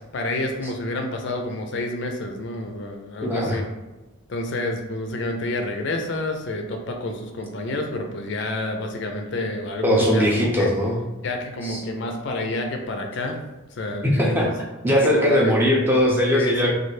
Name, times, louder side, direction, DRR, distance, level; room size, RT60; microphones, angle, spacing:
voice 1, 0.1-3.6 4.3-10.7 11.2-13.4 13.7-14.5 15.0-15.5 16.3-16.7, left 2 dB, 55° left, 4 dB, 0.4 m, -29 dB
voice 2, 3.2-3.6 9.8-11.0 11.6-11.8 14.0-14.5 14.8-16.7, equal, 10° right, -3 dB, 0.5 m, -20 dB
3.2 x 2.3 x 3.2 m, 1.1 s
head